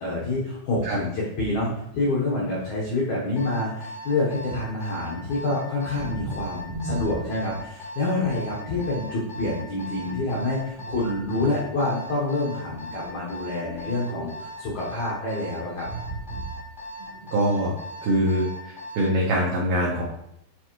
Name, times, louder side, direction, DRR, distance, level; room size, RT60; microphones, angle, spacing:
voice 1, 0.0-15.9, left 2 dB, 80° left, -5 dB, 1.6 m, -27 dB
Alarm, 3.3-19.2, equal, 35° left, 0.3 m, -39 dB
sound 1, 6.0-7.8 8.2-8.9 9.3-12.4 12.8-14.4 14.6-15.0 15.5-16.7 17.0-17.4, right 2 dB, 75° right, 1.8 m, -38 dB
voice 2, 17.3-17.7 18.0-18.5 19.0-20.0, equal, 90° right, -3 dB, 1.9 m, -22 dB
8.1 x 4.4 x 3.1 m, 0.77 s
omnidirectional pair, 5.1 m